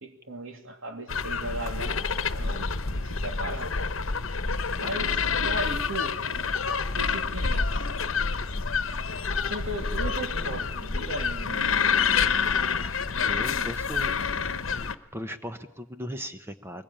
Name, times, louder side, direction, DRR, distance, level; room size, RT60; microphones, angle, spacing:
voice 1, 0.0-3.9 4.8-6.2 6.9-7.9 9.4-11.9, right 1 dB, 90° right, 5 dB, 2.7 m, -37 dB
sound 1, 1.1-15.0, left 5 dB, 90° left, 1.0 m, -28 dB
voice 2, 13.2-14.1 14.6-14.7 15.1-16.8, equal, 10° right, 8 dB, 0.9 m, -37 dB
22.5 x 21.0 x 8.9 m, 0.93 s
head